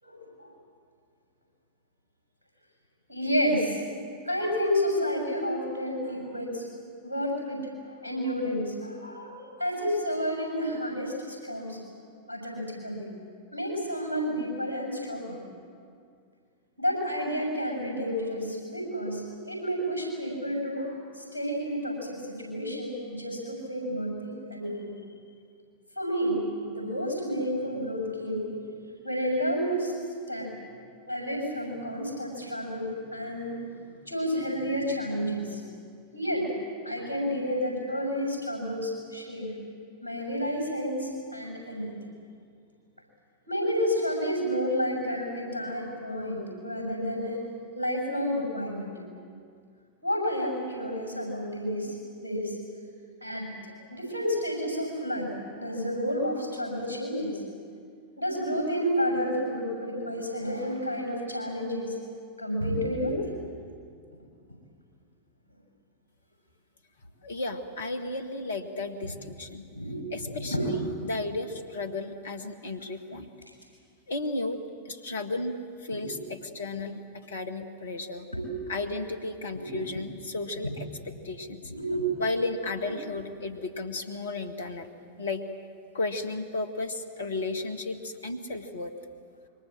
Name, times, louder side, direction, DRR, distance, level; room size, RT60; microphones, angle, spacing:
voice 1, 0.0-0.5 3.1-3.8 4.3-6.7 7.0-7.6 8.0-11.8 12.3-13.1 13.5-15.4 16.8-24.9 25.9-28.5 29.0-29.9 30.3-30.5 31.1-33.6 34.1-35.6 36.1-36.5 36.8-39.5 40.0-41.9 43.5-47.4 47.7-48.9 50.0-51.9 52.2-52.6 53.2-53.5 53.9-55.3 55.6-57.3 58.2-61.9 62.4-63.2 69.8-70.8 75.9-76.1 78.3-78.5 79.5-79.8 81.7-82.1, equal, 85° right, 0 dB, 6.8 m, -30 dB
voice 2, 67.2-69.7 70.1-73.3 74.1-74.6 74.9-78.3 78.7-81.7 82.2-84.9 85.2-85.5 85.9-88.9, left 2 dB, 65° left, 7 dB, 1.8 m, -34 dB
26.5 x 23.5 x 7.6 m, 2.2 s
figure-of-eight pair, 90°, 0 cm